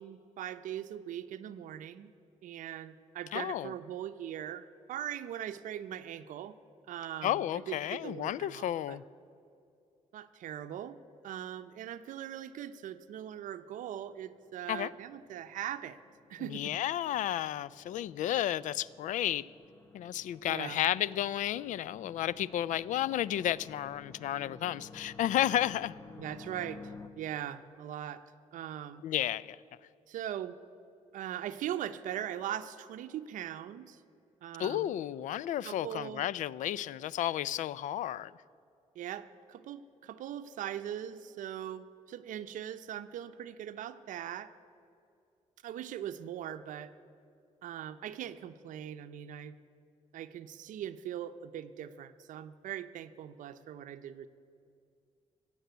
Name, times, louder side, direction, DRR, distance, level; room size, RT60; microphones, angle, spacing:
voice 1, 0.0-2.1 2.4-6.5 6.9-9.0 10.1-11.0 11.2-16.0 16.3-16.7 20.5-20.8 26.2-28.2 28.5-29.0 30.1-30.6 31.1-34.0 34.4-34.9 35.6-36.2 39.0-44.5 45.6-46.9 47.6-49.6 50.1-54.3, right 10 dB, 85° right, 0.6 m, -40 dB
voice 2, 3.3-3.7 7.2-9.0 14.7-14.9 16.4-19.4 19.9-26.0 29.0-29.6 34.6-38.3, left 12 dB, 75° left, 0.4 m, -32 dB
sound 1, 13.9-27.1, left 3 dB, 20° left, 0.8 m, -53 dB
16.0 x 7.4 x 9.2 m
cardioid pair, 125°, 13 cm